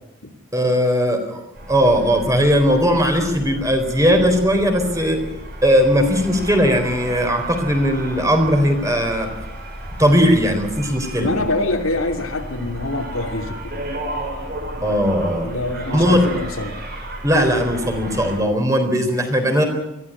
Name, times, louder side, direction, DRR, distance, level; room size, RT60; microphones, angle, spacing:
voice 1, 0.5-1.4 1.7-5.2 5.6-9.3 10.0-11.3 14.8-15.5 15.9-16.2 17.2-19.7, equal, 15° right, 5 dB, 4.0 m, -18 dB
sound 1, 1.6-18.4, right 1 dB, 50° right, 6.1 m, -33 dB
voice 2, 11.2-13.9 15.4-16.8, left 2 dB, 80° left, 4 dB, 2.7 m, -25 dB
22.0 x 15.0 x 9.9 m, 0.91 s
head